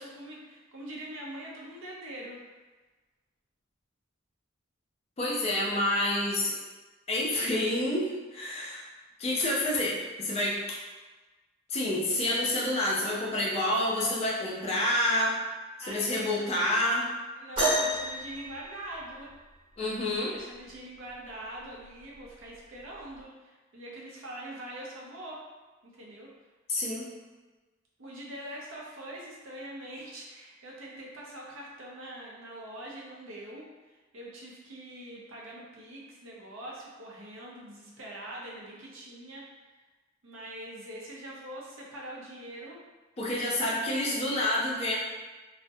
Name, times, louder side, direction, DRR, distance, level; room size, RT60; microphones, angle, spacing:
voice 1, 0.0-2.4 15.8-16.5 17.4-19.3 20.1-25.4 25.8-26.3 28.0-39.4 40.2-42.8, right 1 dB, 75° right, -3 dB, 0.6 m, -43 dB
voice 2, 5.2-6.5 7.1-8.8 9.2-10.8 11.7-15.4 15.8-17.1 19.8-20.4 26.7-27.1 43.2-45.0, left 1 dB, 30° left, -4 dB, 0.4 m, -28 dB
sound 1, 17.6-19.5 21.1-21.2 22.0-22.2 23.2-23.3, right 1 dB, 25° right, 1.1 m, -30 dB
2.3 x 2.0 x 2.6 m, 1.2 s
head